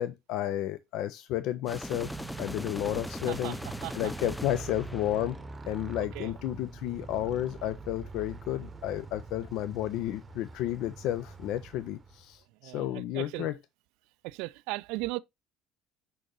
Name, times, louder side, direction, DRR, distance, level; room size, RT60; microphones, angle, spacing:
voice 1, 0.0-2.1 2.4-5.4 5.7-13.6, left 12 dB, 60° left, 0.4 m, -32 dB
sound 1, 1.7-5.7, left 1 dB, 5° left, 0.5 m, -41 dB
Motorcycle, 1.7-12.4, right 4 dB, 30° right, 0.8 m, -44 dB
voice 2, 12.6-13.5 14.2-15.2, right 21 dB, 65° right, 0.3 m, -36 dB
6.3 x 5.5 x 3.0 m
figure-of-eight pair, 60°, 0 cm